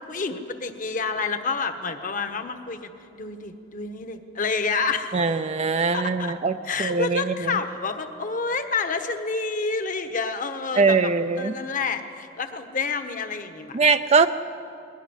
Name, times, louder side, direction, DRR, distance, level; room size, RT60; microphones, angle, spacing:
voice 1, 0.0-5.2 5.9-6.3 6.6-11.1 11.4-13.9, left 4 dB, 45° left, 8 dB, 1.4 m, -29 dB
voice 2, 5.1-7.6 10.8-11.5 13.7-14.3, right 4 dB, 35° right, 9 dB, 0.5 m, -22 dB
21.0 x 18.0 x 9.9 m, 2.7 s
head